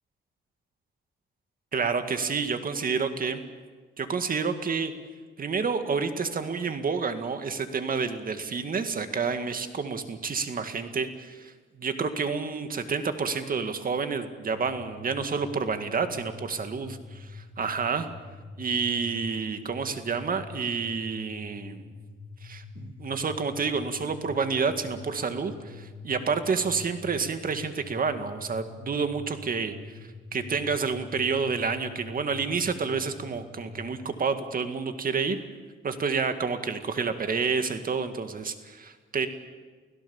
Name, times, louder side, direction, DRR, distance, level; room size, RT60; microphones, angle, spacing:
voice 1, 1.7-3.4 4.0-4.9 5.4-18.1 18.6-21.9 22.4-29.7 30.3-35.4 35.8-39.3, right 5 dB, 45° right, 8 dB, 2.1 m, -29 dB
sound 1, 14.5-34.0, left 4 dB, 80° left, 3.2 m, -45 dB
30.0 x 16.5 x 7.2 m, 1.5 s
cardioid pair, 95°, 20 cm